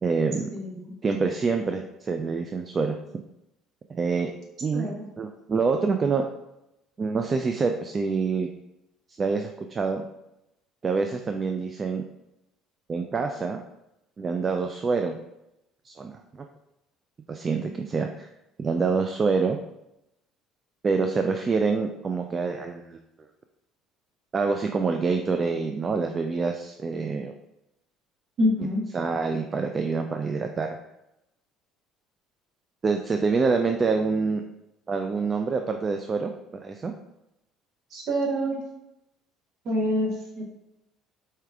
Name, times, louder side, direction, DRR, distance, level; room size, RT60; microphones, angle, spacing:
voice 1, 0.0-0.5 1.0-3.0 3.9-4.3 4.6-6.3 7.0-8.5 9.2-10.0 10.8-12.0 12.9-13.6 14.2-15.2 15.8-16.5 17.3-18.3 18.6-19.6 20.8-23.0 24.3-27.3 28.9-30.8 32.8-34.4 34.9-36.9, right 4 dB, 35° right, 5 dB, 0.3 m, -26 dB
voice 2, 0.5-0.9 4.7-5.0 28.4-28.8 37.9-38.6 39.6-40.4, equal, 55° right, -2 dB, 1.5 m, -26 dB
4.3 x 3.3 x 3.6 m, 0.88 s
hypercardioid pair, 60°, 0 cm